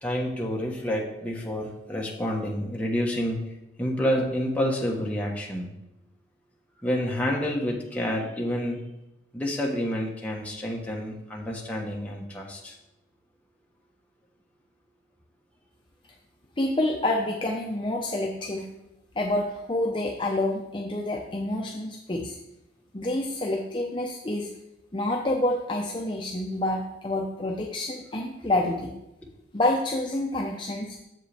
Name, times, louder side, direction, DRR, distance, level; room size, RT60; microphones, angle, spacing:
voice 1, 0.0-3.4 3.8-5.7 6.8-8.8 9.3-12.7, equal, 10° left, -2 dB, 1.2 m, -28 dB
voice 2, 16.6-18.7 19.2-22.4 22.9-24.5 24.9-28.9 29.5-31.0, left 1 dB, 30° left, -1 dB, 0.7 m, -28 dB
7.6 x 7.2 x 3.5 m, 0.87 s
head